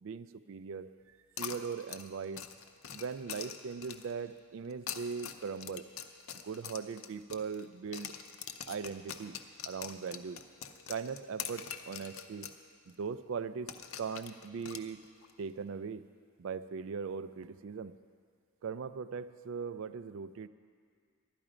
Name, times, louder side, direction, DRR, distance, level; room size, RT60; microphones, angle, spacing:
voice 1, 0.0-0.9 1.4-2.4 2.9-5.9 6.4-8.1 8.7-9.4 9.6-10.4 10.9-12.5 12.9-15.0 15.4-16.1 16.4-17.9 18.6-20.5, right 5 dB, 60° right, 14 dB, 0.3 m, -39 dB
sound 1, 1.4-4.2 4.7-7.7 7.9-12.6 12.9-13.0 13.7-15.3, left 8 dB, 70° left, 0.6 m, -44 dB
12.5 x 11.5 x 4.9 m, 2.1 s
head